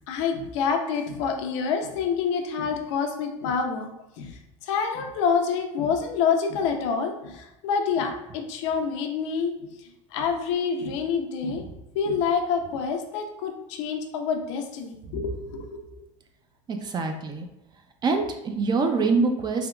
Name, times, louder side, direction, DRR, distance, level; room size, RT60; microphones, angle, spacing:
voice 1, 0.1-3.9 4.2-9.5 10.1-11.6 11.9-15.8, left 6 dB, 70° left, 3 dB, 0.6 m, -27 dB
voice 2, 16.7-17.5 18.0-19.7, right 4 dB, 25° right, 5 dB, 0.5 m, -25 dB
3.5 x 2.8 x 2.3 m, 0.89 s
hypercardioid pair, 95°, 16 cm